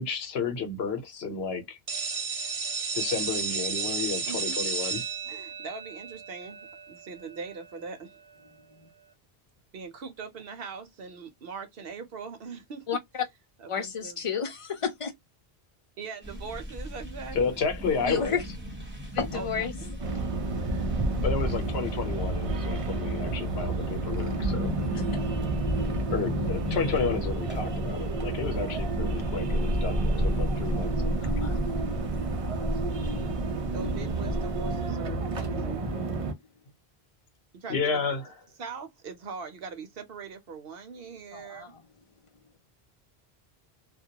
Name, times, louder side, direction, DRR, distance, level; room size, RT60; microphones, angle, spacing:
voice 1, 0.0-1.8 2.9-5.0 17.3-18.4 21.2-24.7 26.1-31.1 37.7-38.3, left 5 dB, 80° left, 1.0 m, -31 dB
sound 1, 1.9-7.5, right 5 dB, 85° right, 1.2 m, -33 dB
voice 2, 4.3-4.6 5.2-8.2 9.7-12.8 13.6-14.2 16.0-17.6 19.3-19.9 33.7-35.9 37.5-38.0 38.6-41.7, right 5 dB, 70° right, 0.9 m, -41 dB
voice 3, 13.7-15.1 18.1-18.4 19.1-20.2 25.1-25.2 31.2-31.6 41.3-41.7, left 6 dB, 40° left, 0.5 m, -32 dB
sound 2, 16.2-34.9, equal, 10° right, 0.9 m, -34 dB
sound 3, 20.0-36.3, right 3 dB, 45° right, 0.5 m, -31 dB
2.2 x 2.2 x 2.8 m
omnidirectional pair, 1.0 m